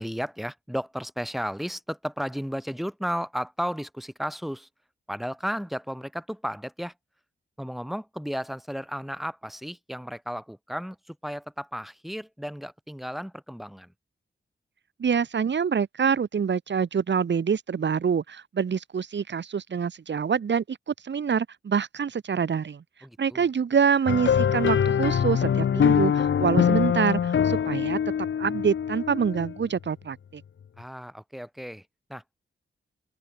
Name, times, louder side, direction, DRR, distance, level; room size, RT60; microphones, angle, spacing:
voice 1, 0.0-4.7 5.1-6.9 7.6-13.9 23.0-23.5 30.8-32.4, equal, ahead, 5.0 m, -34 dB
voice 2, 15.0-22.8 23.2-28.0 28.4-30.4, right 6 dB, 70° right, 4.6 m, -26 dB
sound 1, 24.1-29.6, left 8 dB, 85° left, 1.6 m, -23 dB
open air
wide cardioid pair, 165°, 19 cm